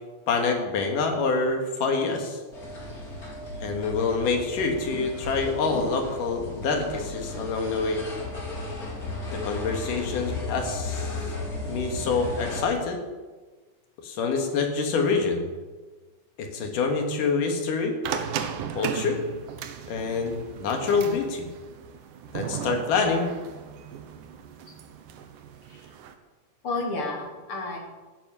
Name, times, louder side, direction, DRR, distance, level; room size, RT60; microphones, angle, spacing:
voice 1, 0.3-2.4 3.6-8.0 9.3-11.2 11.6-13.0 14.0-15.4 16.4-17.9 18.8-19.2 19.9-21.5 22.3-23.3, left 4 dB, 85° left, 4 dB, 3.4 m, -26 dB
sound 1, 2.5-12.6, left 2 dB, 30° left, 3.4 m, -35 dB
sound 2, 18.0-26.1, right 8 dB, 85° right, 2.6 m, -36 dB
voice 2, 26.6-27.8, left 3 dB, 45° left, 0 dB, 3.4 m, -31 dB
15.5 x 9.7 x 6.9 m, 1.3 s
omnidirectional pair, 3.7 m